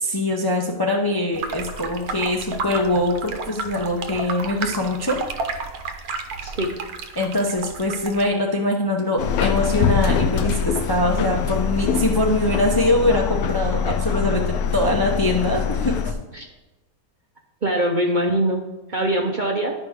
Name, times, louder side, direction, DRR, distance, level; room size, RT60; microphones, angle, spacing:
voice 1, 0.0-5.2 7.1-16.1, left 1 dB, 25° left, 0 dB, 0.5 m, -23 dB
sound 1, 1.3-8.3, right 4 dB, 80° right, 1.3 m, -31 dB
voice 2, 6.4-6.7 16.3-16.5 17.6-18.6 18.9-19.7, right 1 dB, 45° right, 1 dB, 0.6 m, -22 dB
Subway metro underground, 9.2-16.1, left 6 dB, 85° left, 1.2 m, -23 dB
11.5 x 5.1 x 3.6 m, 1.1 s
omnidirectional pair, 1.6 m